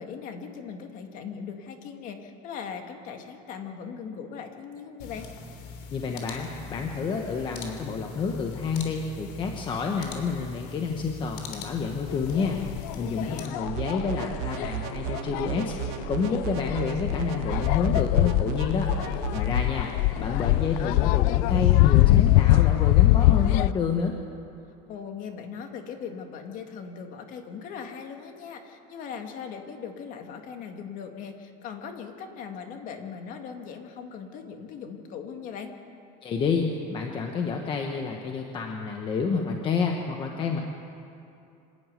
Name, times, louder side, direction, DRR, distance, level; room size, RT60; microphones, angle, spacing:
voice 1, 0.0-5.3 13.2-13.7 24.9-35.7, left 6 dB, 40° left, 5 dB, 2.0 m, -39 dB
sound 1, 5.0-13.5, left 4 dB, 90° left, 3.3 m, -41 dB
voice 2, 5.9-12.6 12.9-15.7 16.1-24.1 36.2-40.6, left 5 dB, 25° left, 2 dB, 1.2 m, -29 dB
sound 2, 12.1-23.7, left 17 dB, 70° left, 0.5 m, -23 dB
sound 3, 13.6-19.6, right 17 dB, 75° right, 0.5 m, -35 dB
26.0 x 11.5 x 9.1 m, 2.7 s
cardioid pair, 170°, 20 cm